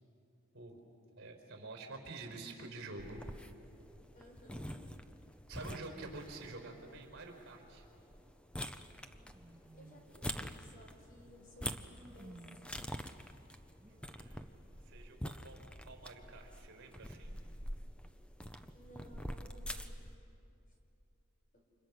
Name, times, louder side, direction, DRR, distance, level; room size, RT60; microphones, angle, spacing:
voice 1, 1.2-3.2 5.5-7.8 14.1-14.4 14.8-17.4, right 3 dB, 55° right, 3 dB, 4.5 m, -48 dB
sound 1, 3.0-20.2, equal, 5° left, 0.7 m, -46 dB
voice 2, 4.1-5.0 9.7-11.8 12.1-13.0 18.7-20.0 21.5-21.6, left 1 dB, 40° left, 1 dB, 4.7 m, -59 dB
sound 2, 8.8-10.1 11.4-12.9 13.8-14.4, right 1 dB, 20° right, 1.6 m, -58 dB
29.5 x 26.5 x 6.3 m, 2.7 s
head